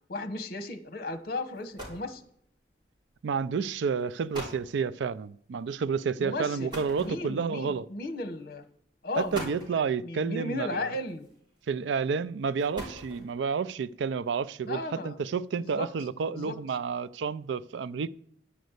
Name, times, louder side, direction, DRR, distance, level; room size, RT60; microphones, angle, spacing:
voice 1, 0.1-2.2 6.2-6.7 7.0-8.6 9.0-11.3 14.6-15.2 15.6-15.9 16.3-16.6, left 2 dB, 55° left, 1.0 m, -35 dB
sound 1, 1.2-1.3 1.5-2.2 3.1-3.4 4.0-4.1 4.3-4.7 6.7-7.6 8.5-8.6 9.1-9.8 11.1-11.6 12.4-13.4, equal, 25° right, 3.6 m, -41 dB
voice 2, 3.2-7.9 9.2-10.9 11.7-18.1, right 5 dB, 85° right, 0.4 m, -30 dB
10.0 x 5.2 x 7.9 m
head